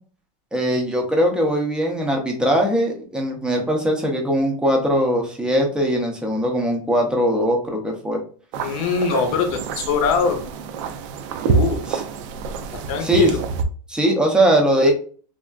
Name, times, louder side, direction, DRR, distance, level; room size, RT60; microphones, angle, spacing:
voice 1, 0.5-8.2 11.9-12.0 13.0-13.3 13.9-14.9, equal, 5° right, 1 dB, 0.5 m, -20 dB
sound 1, 8.5-13.6, right 5 dB, 55° right, 0.4 m, -27 dB
voice 2, 8.6-10.4 11.4-11.8 12.9-13.4, left 5 dB, 50° left, 5 dB, 0.7 m, -22 dB
3.3 x 2.4 x 2.3 m, 0.42 s
supercardioid pair, 155°, 19 cm